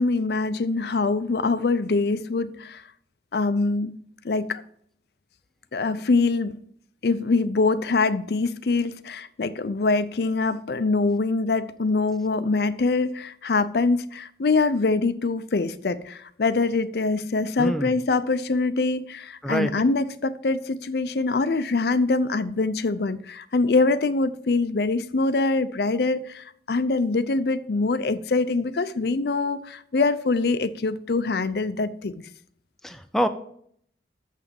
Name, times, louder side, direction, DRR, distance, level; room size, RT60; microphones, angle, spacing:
voice 1, 0.0-2.8 3.3-4.0 4.2-4.6 5.7-6.6 7.0-32.1, left 3 dB, 60° left, 13 dB, 0.5 m, -24 dB
voice 2, 17.6-17.9 19.4-19.8 32.8-33.3, equal, ahead, 7 dB, 0.5 m, -26 dB
7.3 x 5.9 x 7.0 m, 0.65 s
head